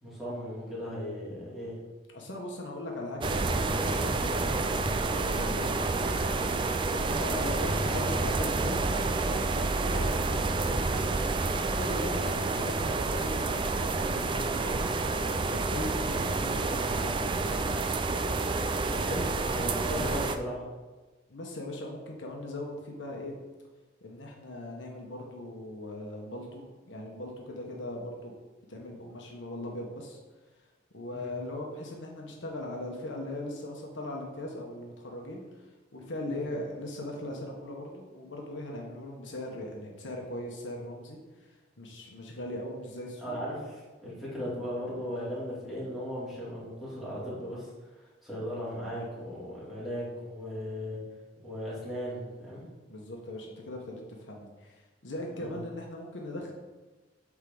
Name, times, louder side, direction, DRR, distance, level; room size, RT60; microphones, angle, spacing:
voice 1, 0.0-1.7 18.9-20.6 31.1-31.3 36.2-36.4 43.2-43.6 44.0-47.7 48.2-51.0 51.4-52.6 55.3-55.5, equal, ahead, -10 dB, 2.5 m, -37 dB
voice 2, 2.1-6.3 6.9-8.9 9.3-11.0 11.5-14.9 15.4-17.3 21.3-23.3 24.0-28.3 28.7-30.2 30.9-43.4 52.9-56.5, left 1 dB, 75° left, 0 dB, 1.2 m, -39 dB
sound 1, 3.2-20.4, right 3 dB, 25° right, 0.3 m, -29 dB
8.1 x 3.7 x 5.4 m, 1.2 s
head